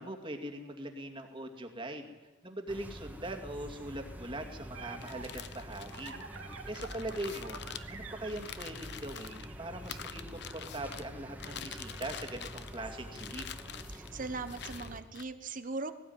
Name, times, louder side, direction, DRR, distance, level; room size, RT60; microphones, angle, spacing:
voice 1, 0.0-2.2 2.4-7.6 7.9-13.5, right 1 dB, 25° right, 4 dB, 2.4 m, -41 dB
sound 1, 2.7-15.0, equal, 10° right, 1.8 m, -47 dB
sound 2, 4.2-10.0, right 5 dB, 90° right, 2.6 m, -49 dB
sound 3, 4.9-9.4 9.8-11.1 11.4-12.8 13.1-14.1 14.5-15.2, left 8 dB, 60° left, 1.0 m, -46 dB
voice 2, 13.9-15.9, right 3 dB, 40° right, 10 dB, 1.1 m, -39 dB
19.0 x 17.5 x 9.6 m, 1.2 s
head